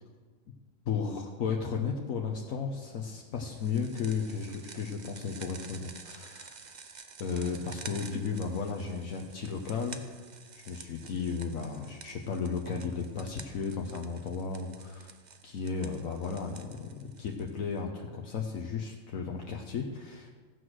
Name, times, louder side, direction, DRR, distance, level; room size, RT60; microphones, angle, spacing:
voice 1, 0.8-6.6 7.2-10.0 10.5-15.2 15.4-20.3, left 5 dB, 80° left, 1 dB, 1.4 m, -34 dB
sound 1, 3.5-17.8, right 5 dB, 40° right, 0.8 m, -50 dB
15.0 x 8.1 x 6.3 m, 1.5 s
omnidirectional pair, 1.4 m